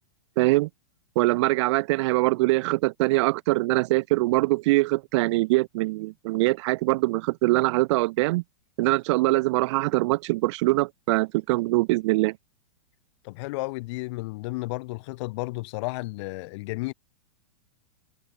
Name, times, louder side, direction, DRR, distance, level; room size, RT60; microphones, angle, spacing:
voice 1, 0.4-0.7 1.2-8.4 8.8-12.4, right 21 dB, 55° right, 3.4 m, -23 dB
voice 2, 13.2-16.9, left 23 dB, 55° left, 6.0 m, -32 dB
hypercardioid pair, 125°, 18 cm